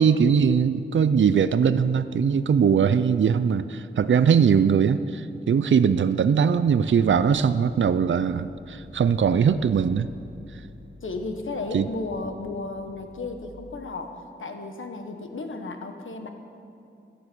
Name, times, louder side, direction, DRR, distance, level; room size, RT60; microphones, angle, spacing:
voice 1, 0.0-10.1 11.7-11.9, right 7 dB, 70° right, 13 dB, 0.5 m, -21 dB
sound 1, 6.8-13.4, left 2 dB, 45° right, 4.9 m, -48 dB
voice 2, 11.0-16.3, left 3 dB, 80° left, 5 dB, 1.4 m, -34 dB
16.5 x 12.5 x 6.1 m, 2.5 s
wide cardioid pair, 100°, 20 cm